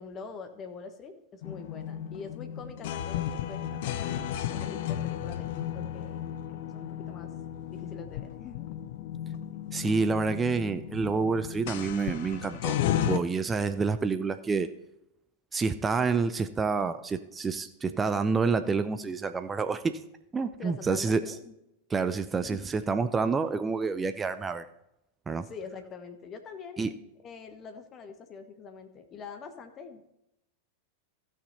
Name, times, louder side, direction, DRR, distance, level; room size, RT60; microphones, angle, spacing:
voice 1, 0.0-7.3 7.7-8.7 20.6-21.5 22.4-22.7 25.4-26.8 27.2-30.1, left 5 dB, 30° left, 7 dB, 1.3 m, -45 dB
sound 1, 1.4-13.2, left 11 dB, 50° left, 0.6 m, -34 dB
voice 2, 9.7-14.7 15.5-20.0 20.3-21.3 21.9-24.6 25.3-25.5 26.8-26.9, right 4 dB, 15° right, 10 dB, 0.5 m, -28 dB
14.5 x 6.4 x 4.1 m, 0.84 s
figure-of-eight pair, 90°, 0 cm